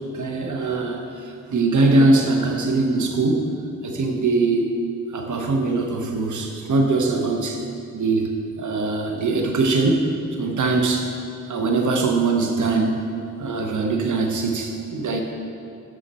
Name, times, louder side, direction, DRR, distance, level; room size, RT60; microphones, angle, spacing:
voice 1, 0.1-1.1 1.5-3.5 3.8-4.8 5.1-7.6 7.9-8.3 8.6-10.1 10.4-11.1 11.5-13.1 13.4-15.2, right 3 dB, 80° right, 3 dB, 1.1 m, -21 dB
11.5 x 6.4 x 4.3 m, 2.5 s
cardioid pair, 60°, 29 cm